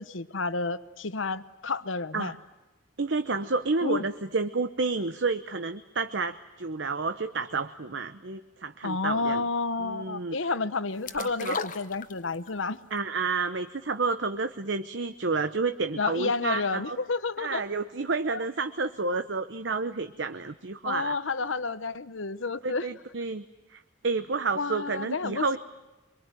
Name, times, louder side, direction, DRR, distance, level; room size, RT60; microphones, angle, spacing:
voice 1, 0.0-2.3 3.8-4.0 8.8-12.8 16.0-17.6 20.8-22.9 24.5-25.6, left 3 dB, 75° left, 14 dB, 1.0 m, -30 dB
voice 2, 3.0-9.4 9.8-10.4 11.1-11.6 12.9-17.0 17.4-21.2 22.6-23.4 23.7-25.6, right 4 dB, 65° right, 9 dB, 0.9 m, -30 dB
sound 1, 11.1-12.6 13.0-13.1, left 5 dB, 40° left, 1.1 m, -35 dB
25.0 x 23.5 x 9.2 m, 1.1 s
head